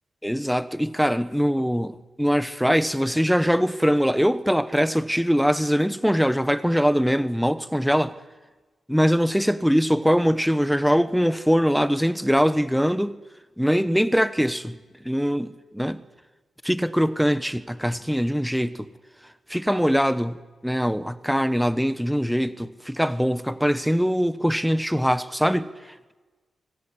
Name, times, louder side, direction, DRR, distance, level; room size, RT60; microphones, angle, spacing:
voice 1, 0.2-8.1 8.9-13.2 13.6-16.0 16.6-18.9 19.5-25.7, equal, ahead, 1.0 m, -22 dB
25.0 x 21.0 x 9.8 m
wide cardioid pair, 165°, 0 cm